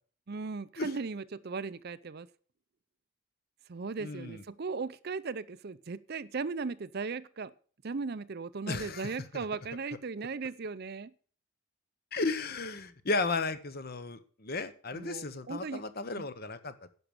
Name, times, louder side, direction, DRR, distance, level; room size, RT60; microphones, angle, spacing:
voice 1, 0.3-2.3 3.7-7.5 7.8-11.1 14.9-15.8 16.2-16.3, right 4 dB, 45° right, 16 dB, 0.5 m, -37 dB
voice 2, 4.0-4.4 8.7-9.4 12.1-16.7, left 3 dB, 45° left, 11 dB, 1.0 m, -34 dB
11.0 x 6.3 x 8.9 m, 0.44 s
head